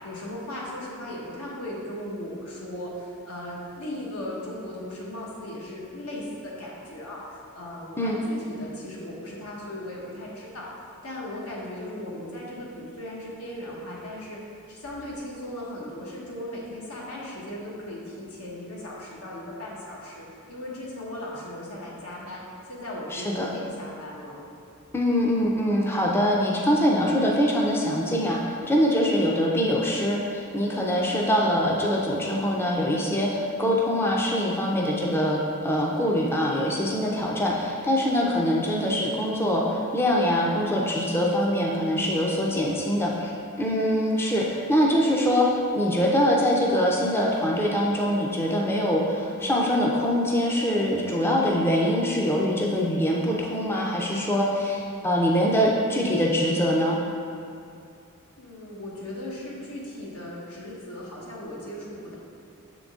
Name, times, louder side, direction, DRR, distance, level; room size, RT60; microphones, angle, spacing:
voice 1, 0.0-22.4 22.7-24.4 30.9-31.3 44.0-44.3 58.4-62.1, left 1 dB, 80° left, -4 dB, 1.2 m, -37 dB
voice 2, 23.1-23.5 24.9-28.4 28.7-43.3 43.6-57.0, equal, 10° left, -3 dB, 0.4 m, -23 dB
6.9 x 3.8 x 3.6 m, 2.5 s
head